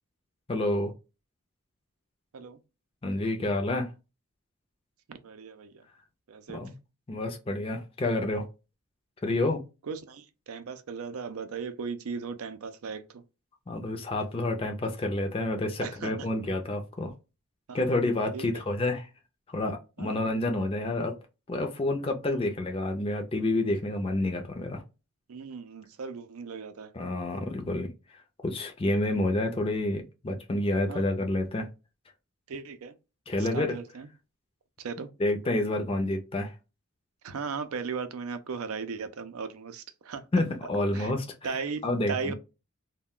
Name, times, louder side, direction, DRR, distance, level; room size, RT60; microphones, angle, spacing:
voice 1, 0.5-0.9 3.0-3.9 6.5-6.7 7.1-8.5 9.2-9.6 13.7-17.1 17.7-19.1 19.5-21.1 21.5-24.8 26.9-27.9 28.4-31.7 33.3-33.8 35.2-36.5 40.3-41.6 41.8-42.3, left 2 dB, 25° left, 0.4 m, -29 dB
voice 2, 5.1-5.8 6.3-6.7 9.8-13.2 15.8-16.3 17.7-18.0 18.3-18.5 20.0-20.3 22.3-22.5 25.3-26.9 30.9-31.0 32.5-32.9 33.4-34.1 34.8-35.1 37.2-40.2 40.9-41.1 41.4-42.3, right 5 dB, 85° right, 0.5 m, -37 dB
2.3 x 2.2 x 3.6 m
head